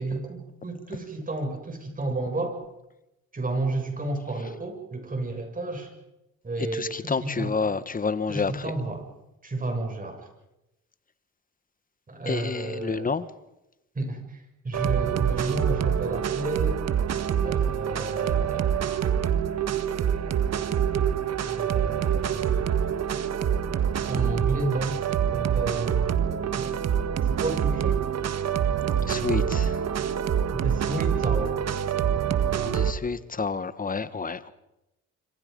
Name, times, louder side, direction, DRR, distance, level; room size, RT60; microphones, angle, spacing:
voice 1, 0.0-2.6 3.3-5.9 6.4-7.5 8.3-9.0 9.4-10.3 12.1-13.1 13.9-16.8 17.4-18.8 21.5-22.6 23.8-26.8 27.3-28.0 30.5-31.6, right 2 dB, 25° right, 4 dB, 7.1 m, -32 dB
voice 2, 6.6-8.7 12.2-13.3 15.4-15.5 29.0-29.9 32.6-34.5, left 5 dB, 30° left, 14 dB, 1.4 m, -29 dB
sound 1, 14.7-32.9, right 8 dB, 60° right, 1.6 m, -26 dB
26.5 x 25.5 x 5.4 m, 0.91 s
cardioid pair, 90°, 30 cm